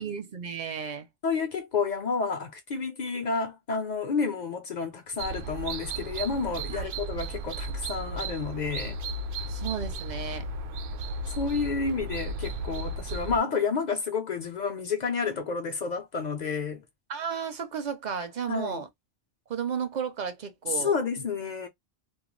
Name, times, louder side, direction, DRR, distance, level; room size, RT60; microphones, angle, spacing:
voice 1, 0.0-1.1 6.7-6.9 9.5-10.5 17.1-18.9 19.5-20.9, right 7 dB, 55° right, 0.5 m, -33 dB
voice 2, 1.2-9.0 11.3-16.8 18.5-18.8 20.7-21.7, left 5 dB, 55° left, 0.5 m, -30 dB
sound 1, 5.2-13.4, right 2 dB, 85° right, 0.8 m, -35 dB
2.3 x 2.2 x 3.0 m
omnidirectional pair, 1.1 m